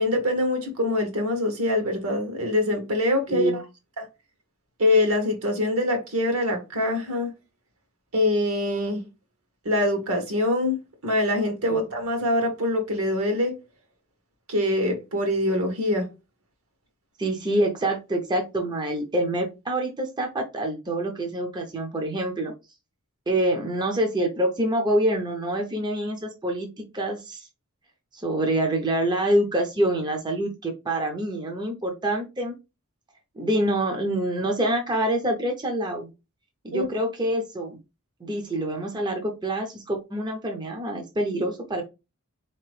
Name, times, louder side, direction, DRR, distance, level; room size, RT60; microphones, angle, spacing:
voice 1, 0.0-3.5 4.0-4.1 4.8-7.3 8.1-9.0 9.6-10.8 11.0-13.6 14.5-16.1 36.7-36.9, left 1 dB, 70° right, 1.2 m, -24 dB
voice 2, 3.3-3.6 11.7-11.8 17.2-22.5 23.3-27.5 28.1-32.5 33.4-36.1 36.6-37.8 38.2-41.8, right 1 dB, 20° right, 0.6 m, -26 dB
3.9 x 2.9 x 3.1 m
head